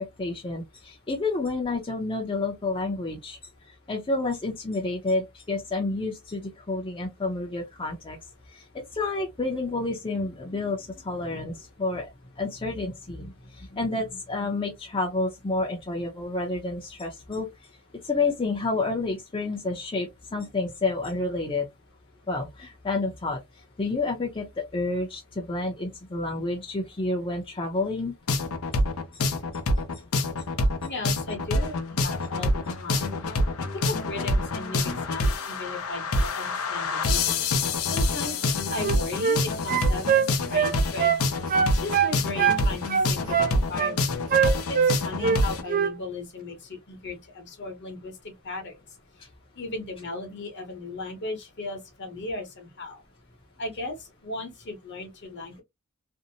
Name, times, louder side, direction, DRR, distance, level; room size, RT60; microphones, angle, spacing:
voice 1, 0.2-3.4 3.9-8.2 8.5-12.1 12.4-17.5 18.0-21.7 22.3-23.4 23.8-28.1, left 3 dB, 25° left, 0.6 m, -29 dB
sound 1, 28.3-45.6, left 2 dB, 80° left, 0.5 m, -26 dB
voice 2, 30.8-32.5 32.8-33.1 33.6-37.4 37.9-38.4 38.7-41.1 41.7-42.8 43.1-44.1 44.7-48.8 49.6-53.0 53.6-54.0 54.2-55.6, left 2 dB, 55° left, 0.9 m, -36 dB
sound 2, 38.7-39.4 39.7-41.2 41.5-42.6 42.9-43.9 44.3-45.4 45.7-45.9, right 7 dB, 40° right, 0.3 m, -23 dB
2.6 x 2.0 x 2.7 m
head